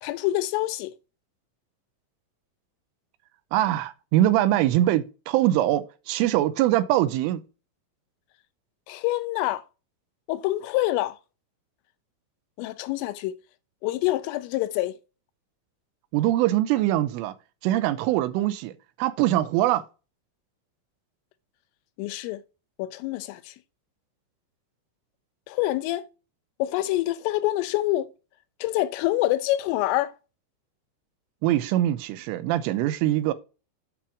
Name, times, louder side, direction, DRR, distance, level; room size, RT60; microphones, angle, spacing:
voice 1, 0.0-0.9 8.9-9.6 10.3-11.2 12.6-13.4 13.8-15.0 22.0-22.4 22.8-23.5 25.5-26.1 26.6-28.1 28.6-30.1, left 16 dB, 85° left, 3.3 m, -26 dB
voice 2, 3.5-7.4 16.1-17.3 17.6-19.8 31.4-33.3, right 14 dB, 85° right, 3.2 m, -23 dB
8.6 x 5.5 x 5.0 m
omnidirectional pair, 5.7 m